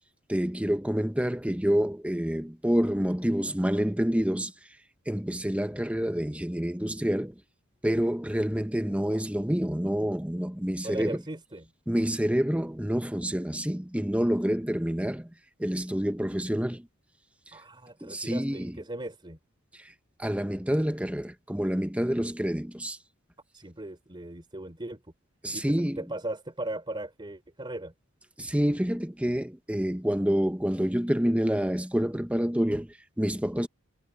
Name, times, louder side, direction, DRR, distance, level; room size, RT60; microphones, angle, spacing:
voice 1, 0.3-4.5 5.1-7.4 7.8-11.2 11.9-15.3 15.6-16.9 17.5-17.6 18.0-18.8 19.7-19.9 20.2-23.0 25.4-26.0 28.4-33.7, equal, 5° right, 1.0 m, -28 dB
voice 2, 10.8-11.7 17.5-19.4 23.5-25.0 25.5-27.9, right 1 dB, 20° right, 3.5 m, -38 dB
head